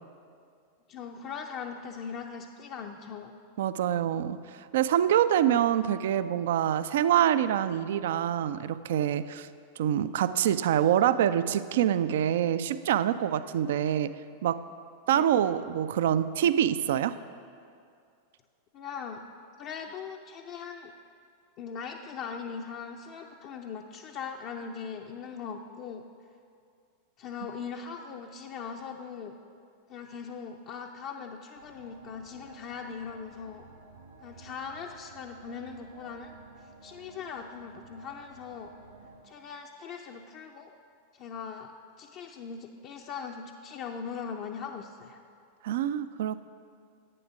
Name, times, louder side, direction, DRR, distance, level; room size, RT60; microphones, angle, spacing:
voice 1, 0.9-3.4 15.1-15.2 18.7-19.2 19.6-20.9 21.6-26.0 27.2-29.3 29.9-33.7 34.2-38.7 39.2-40.7 41.1-41.7 42.0-45.2, left 6 dB, 40° left, 2 dB, 0.5 m, -40 dB
voice 2, 3.6-9.5 9.8-14.1 14.4-14.6 15.1-17.2 45.6-46.4, right 10 dB, 55° right, 14 dB, 0.3 m, -26 dB
sound 1, 31.5-39.2, right 3 dB, 75° right, 2.1 m, -53 dB
11.0 x 8.6 x 6.0 m, 2.4 s
figure-of-eight pair, 90°, 0 cm